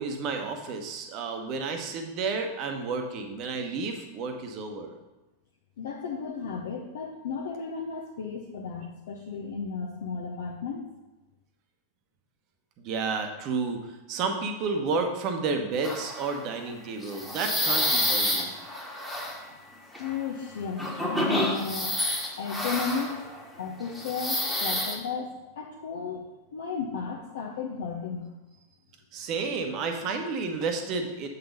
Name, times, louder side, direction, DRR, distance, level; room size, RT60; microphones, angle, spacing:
voice 1, 0.0-4.9 12.8-18.5 29.1-31.3, right 4 dB, 40° right, 4 dB, 1.0 m, -31 dB
voice 2, 5.8-10.9 19.9-20.8 21.1-22.0 22.4-23.2 23.6-28.3, left 5 dB, 60° left, -2 dB, 0.8 m, -34 dB
sound 1, 15.8-16.4 17.0-19.4 19.9-20.2 20.8-23.4 23.9-24.9, left 1 dB, ahead, 1.3 m, -29 dB
7.8 x 4.2 x 5.2 m, 1.1 s
figure-of-eight pair, 90°, 0 cm